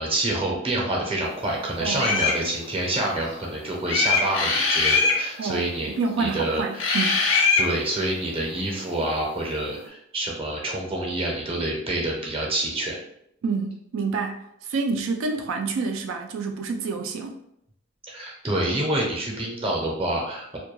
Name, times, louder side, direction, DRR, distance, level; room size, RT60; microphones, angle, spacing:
voice 1, 0.0-5.9 6.2-6.8 7.6-12.9 18.1-20.6, right 1 dB, 30° right, -2 dB, 0.6 m, -27 dB
voice 2, 1.8-2.3 5.4-7.2 13.4-17.4, right 4 dB, 85° right, 4 dB, 0.3 m, -28 dB
sound 1, 2.0-2.4 3.9-5.2 6.8-7.7, left 4 dB, 75° left, 0.5 m, -21 dB
2.2 x 2.2 x 3.0 m, 0.75 s
head